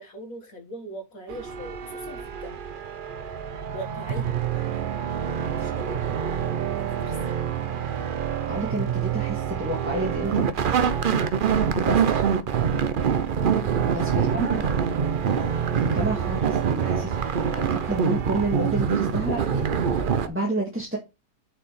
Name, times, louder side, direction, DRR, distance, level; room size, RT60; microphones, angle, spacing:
voice 1, 0.0-2.6 3.7-4.9 5.4-6.2 6.8-7.4, right 1 dB, 60° left, 4 dB, 2.2 m, -41 dB
sound 1, 1.3-20.3, right 7 dB, 50° right, 0.6 m, -25 dB
voice 2, 8.5-10.5 11.7-12.2 13.9-14.7 15.2-21.0, right 1 dB, 10° right, -1 dB, 1.7 m, -30 dB
6.6 x 4.9 x 5.7 m, 0.25 s
omnidirectional pair, 1.7 m